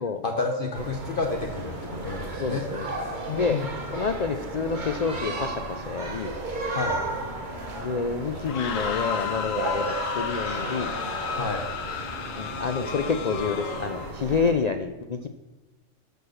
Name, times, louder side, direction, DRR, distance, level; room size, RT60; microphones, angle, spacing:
voice 1, 0.2-2.6 3.3-3.7 6.7-7.0 11.3-11.6, left 3 dB, 45° left, 3 dB, 1.0 m, -30 dB
sound 1, 0.7-14.5, right 2 dB, 40° right, 1.5 m, -34 dB
voice 2, 2.4-2.9 3.3-3.6 3.9-6.3 7.8-10.9 12.4-15.3, left 5 dB, 65° left, 7 dB, 0.4 m, -28 dB
sound 2, 8.4-14.1, left 7 dB, 85° left, 1.2 m, -33 dB
11.5 x 4.8 x 6.4 m, 1.1 s
omnidirectional pair, 1.3 m